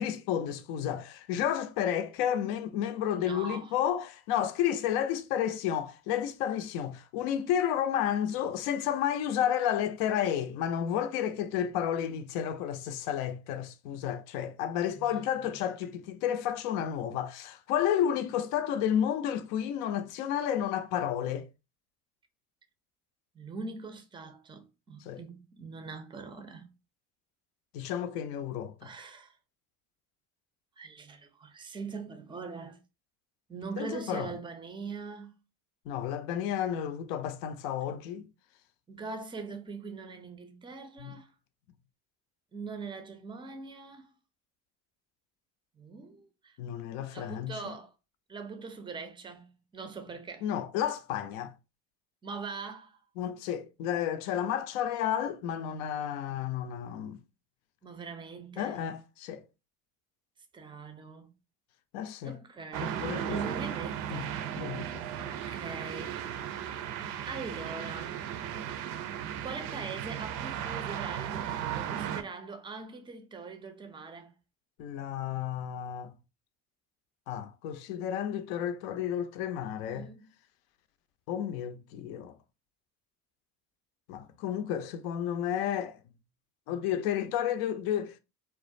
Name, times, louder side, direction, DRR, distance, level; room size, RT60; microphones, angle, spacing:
voice 1, 0.0-21.5 25.1-25.2 27.7-28.9 33.8-34.3 35.9-38.3 41.0-41.1 46.6-47.6 50.4-51.5 53.2-57.2 58.6-59.4 61.9-62.4 62.8-63.5 64.1-64.2 64.6-65.0 74.8-76.1 77.3-80.1 81.3-82.3 84.1-86.0 86.7-88.2, left 10 dB, 75° left, 0.5 m, -31 dB
voice 2, 3.1-3.8 14.8-15.6 23.3-26.7 28.8-29.4 30.8-32.8 33.5-35.4 38.9-41.3 42.5-44.1 45.7-46.6 47.1-47.9 48.3-50.5 52.2-53.0 57.8-58.8 60.5-61.3 62.2-64.7 65.2-66.2 67.3-68.2 69.4-74.3 79.9-80.3, right 4 dB, 10° right, 0.4 m, -42 dB
sound 1, 62.7-72.2, right 9 dB, 65° right, 0.5 m, -36 dB
2.4 x 2.1 x 2.5 m
hypercardioid pair, 60°, 45 cm